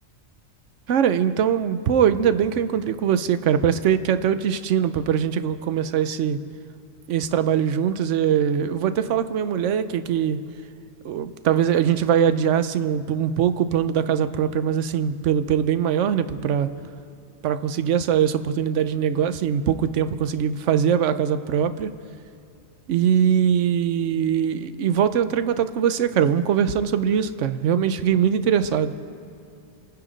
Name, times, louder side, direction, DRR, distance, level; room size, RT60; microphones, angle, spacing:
voice 1, 0.9-6.4 7.1-10.4 11.0-16.7 17.4-21.9 22.9-28.9, right 8 dB, 65° right, 12 dB, 1.0 m, -22 dB
26.5 x 9.9 x 5.2 m, 2.6 s
omnidirectional pair, 1.4 m